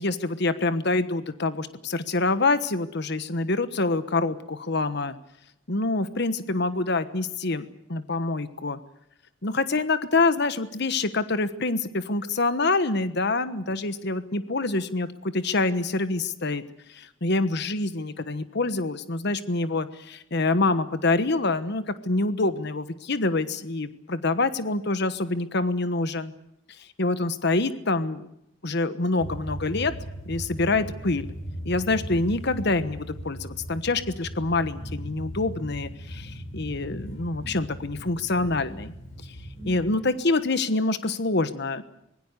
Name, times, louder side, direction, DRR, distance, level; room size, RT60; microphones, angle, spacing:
voice 1, 0.0-5.1 5.7-8.8 9.4-16.6 16.9-26.3 26.8-28.3 28.6-29.9 30.3-31.3 31.6-38.9 39.2-39.3 39.6-41.8, left 3 dB, 60° left, 12 dB, 1.3 m, -26 dB
sound 1, 29.2-40.0, equal, 80° left, 7.0 m, -38 dB
25.5 x 21.5 x 6.7 m, 0.78 s
head